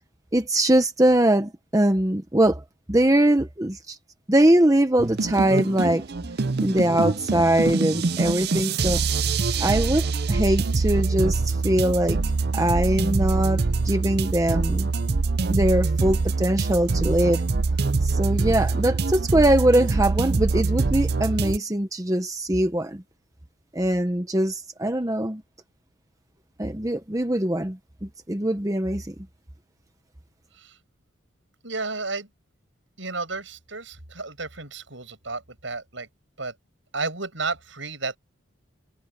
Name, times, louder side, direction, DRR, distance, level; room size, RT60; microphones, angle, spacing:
voice 1, 0.3-4.0 4.3-6.0 6.6-9.0 9.6-12.2 12.5-14.9 15.5-17.4 18.0-23.0 23.7-25.4 26.6-29.1, right 1 dB, 15° right, 0.9 m, -22 dB
sound 1, 5.0-21.6, right 3 dB, 50° right, 0.6 m, -24 dB
voice 2, 31.6-32.3 33.0-36.1 36.4-36.5 36.9-38.2, right 3 dB, 70° right, 7.3 m, -32 dB
head